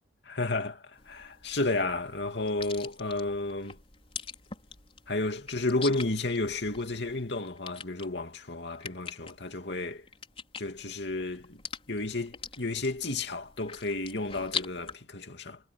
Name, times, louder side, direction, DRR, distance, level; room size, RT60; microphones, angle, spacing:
voice 1, 0.3-3.8 5.1-10.0 10.6-11.6 11.9-15.6, left 2 dB, 60° left, 2.8 m, -32 dB
sound 1, 1.0-14.9, left 6 dB, 30° left, 4.9 m, -43 dB
head